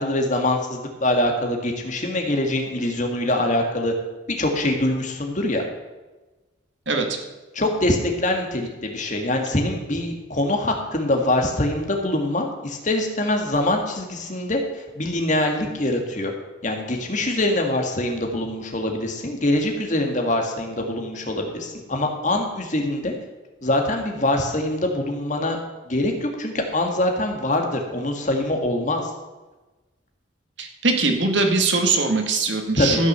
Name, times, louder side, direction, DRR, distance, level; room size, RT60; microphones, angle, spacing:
voice 1, 0.0-3.9 4.3-5.6 7.5-14.6 15.0-16.3 16.6-23.1 23.6-25.6 25.9-29.0 32.8-33.0, left 1 dB, 40° left, 3 dB, 1.9 m, -24 dB
voice 2, 6.9-7.2 30.6-33.1, right 3 dB, 65° right, 4 dB, 1.9 m, -21 dB
14.5 x 6.4 x 6.9 m, 1.2 s
head